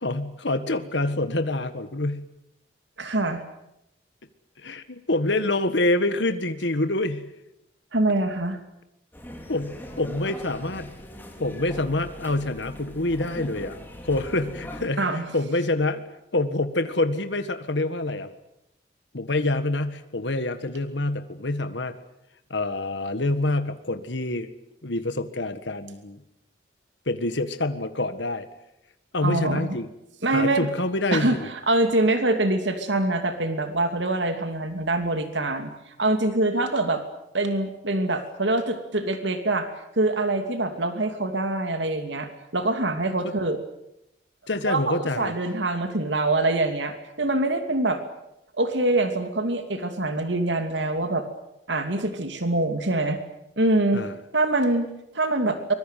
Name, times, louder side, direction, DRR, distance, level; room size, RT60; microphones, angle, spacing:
voice 1, 0.0-2.3 4.6-7.3 9.5-11.0 11.4-13.8 14.0-18.3 19.1-22.0 22.5-24.5 24.8-26.2 27.0-28.5 29.1-29.9 30.3-31.5 43.2-43.3 44.5-45.3 53.9-54.2, left 2 dB, 75° left, 10 dB, 1.6 m, -26 dB
voice 2, 3.0-3.4 7.9-8.6 15.0-15.3 29.2-29.7 30.2-30.7 31.1-37.0 37.3-39.7 40.0-43.6 44.6-48.0 48.6-51.2 51.7-53.2 53.6-54.0 54.3-55.7, right 2 dB, 80° right, 7 dB, 2.8 m, -24 dB
sound 1, 9.1-14.9, equal, 10° left, 3.6 m, -41 dB
24.5 x 22.0 x 9.3 m, 0.85 s
head